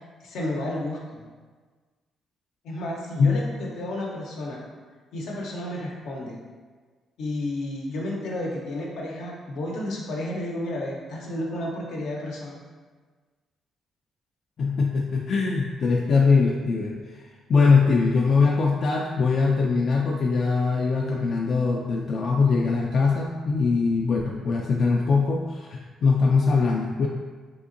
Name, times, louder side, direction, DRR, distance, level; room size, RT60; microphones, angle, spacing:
voice 1, 0.2-1.2 2.6-4.6 5.1-6.4 7.2-12.6, left 1 dB, 80° left, -2 dB, 0.7 m, -32 dB
voice 2, 14.6-17.2 17.5-27.1, left 4 dB, 55° left, -1 dB, 0.3 m, -22 dB
3.5 x 2.8 x 2.5 m, 1.4 s
cardioid pair, 90°, 0 cm